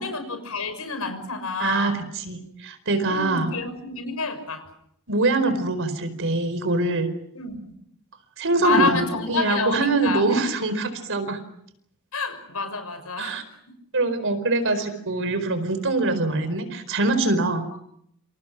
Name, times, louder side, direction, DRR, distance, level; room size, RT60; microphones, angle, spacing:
voice 1, 0.0-2.0 3.0-4.6 7.3-7.6 8.6-10.2 12.1-13.4, left 4 dB, 80° left, 9 dB, 6.2 m, -28 dB
voice 2, 1.6-3.5 5.1-7.1 8.4-11.4 13.2-13.4 13.9-17.6, right 2 dB, 60° right, 10 dB, 4.6 m, -24 dB
28.5 x 28.0 x 6.1 m, 0.71 s
head